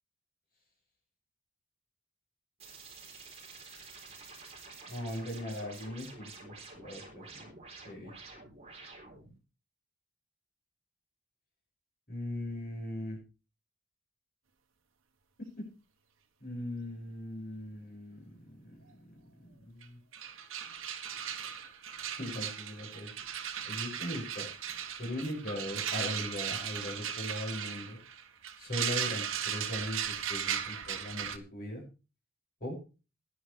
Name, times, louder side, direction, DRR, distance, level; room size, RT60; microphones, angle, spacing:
sound 1, 2.6-9.3, right 4 dB, 30° right, 3.9 m, -50 dB
voice 1, 4.9-7.5 7.8-8.1 12.1-13.2 16.4-20.0 22.2-23.1 23.6-24.4 25.0-28.0 28.6-31.8 32.6-32.8, left 1 dB, 45° left, -1 dB, 6.7 m, -39 dB
sound 2, 19.8-19.9 20.1-31.4, right 9 dB, 65° right, 1.4 m, -37 dB
16.5 x 11.0 x 3.4 m, 0.32 s
head